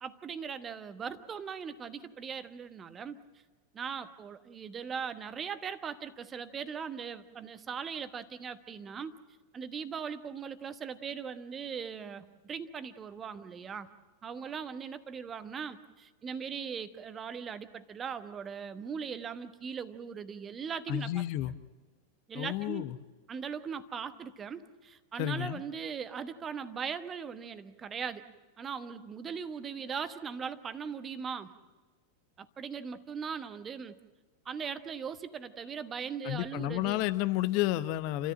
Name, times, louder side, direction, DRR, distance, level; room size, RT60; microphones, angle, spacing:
voice 1, 0.0-3.2 3.7-9.2 9.5-13.9 14.2-21.1 22.3-22.9 23.3-28.2 28.6-31.5 32.4-34.0 34.4-37.0, right 6 dB, 25° right, 11 dB, 1.2 m, -39 dB
voice 2, 20.9-21.5 22.3-23.0 25.2-25.6 36.2-38.3, left 15 dB, 45° left, 14 dB, 0.8 m, -31 dB
29.5 x 14.0 x 7.6 m, 1.3 s
figure-of-eight pair, 90°, 0 cm